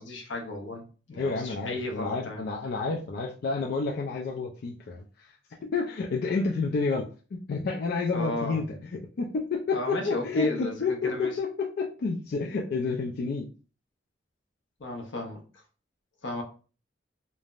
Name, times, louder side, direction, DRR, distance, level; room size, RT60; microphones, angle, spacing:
voice 1, 0.0-2.5 8.1-8.8 9.7-11.4 14.8-15.6 16.2-16.4, left 2 dB, 80° left, 3 dB, 0.7 m, -34 dB
voice 2, 1.2-5.3 5.6-13.5, left 4 dB, 60° left, -1 dB, 0.3 m, -30 dB
3.2 x 2.0 x 2.3 m, 0.36 s
head